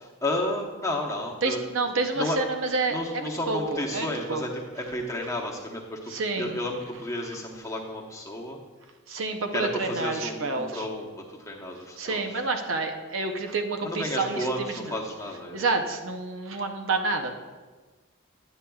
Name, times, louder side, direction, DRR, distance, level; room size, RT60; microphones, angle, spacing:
voice 1, 0.0-1.6 2.2-2.4 2.9-8.6 9.5-12.4 13.8-15.6, left 1 dB, 15° left, -1 dB, 0.8 m, -32 dB
voice 2, 1.4-4.4 6.1-6.6 9.1-10.9 12.0-14.9 15.5-17.3, right 3 dB, 60° right, 5 dB, 0.7 m, -29 dB
10.0 x 8.6 x 2.3 m, 1.3 s
head